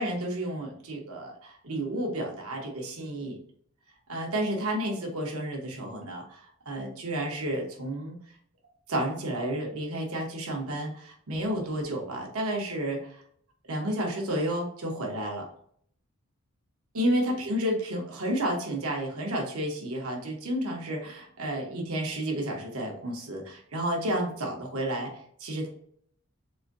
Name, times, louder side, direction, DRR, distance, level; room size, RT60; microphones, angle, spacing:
voice 1, 0.0-3.4 4.1-8.2 8.9-13.2 13.7-15.5 16.9-25.1 25.4-25.7, right 1 dB, 80° right, 0 dB, 1.0 m, -31 dB
4.2 x 2.6 x 2.5 m, 0.62 s
head